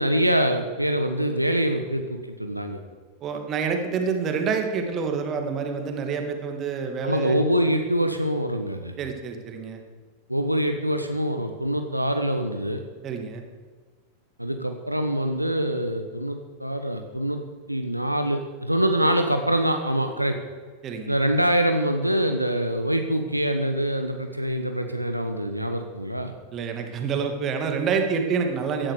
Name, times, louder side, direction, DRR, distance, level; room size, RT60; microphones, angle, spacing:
voice 1, 0.0-2.8 7.0-8.9 10.3-12.8 14.4-17.4 17.7-20.4 21.1-26.3, right 1 dB, 90° right, 6 dB, 1.1 m, -24 dB
voice 2, 3.2-7.4 9.0-9.8 13.0-13.4 20.8-21.1 26.5-28.9, right 5 dB, 30° right, 4 dB, 2.4 m, -27 dB
16.0 x 11.5 x 6.7 m, 1.4 s
figure-of-eight pair, 90°, 0 cm